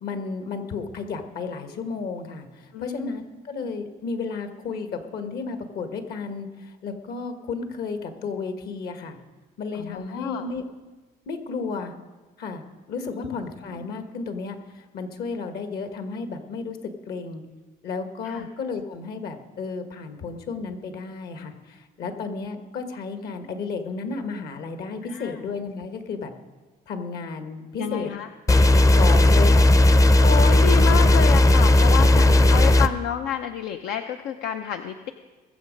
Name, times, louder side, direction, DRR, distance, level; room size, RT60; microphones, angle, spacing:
voice 1, 0.0-9.2 9.6-10.6 11.3-11.9 12.4-12.6 12.9-17.4 17.8-26.3 26.9-28.1 28.6-30.1 32.1-32.4, left 4 dB, 70° left, 7 dB, 1.6 m, -33 dB
voice 2, 2.7-3.2 9.7-10.5 13.0-13.4 18.2-18.5 25.0-25.4 27.7-28.3 30.2-35.1, left 8 dB, 85° left, 6 dB, 0.6 m, -30 dB
sound 1, 28.5-32.9, left 1 dB, 20° left, 0.5 m, -15 dB
21.0 x 7.4 x 5.3 m, 1.3 s
cardioid pair, 110°, 17 cm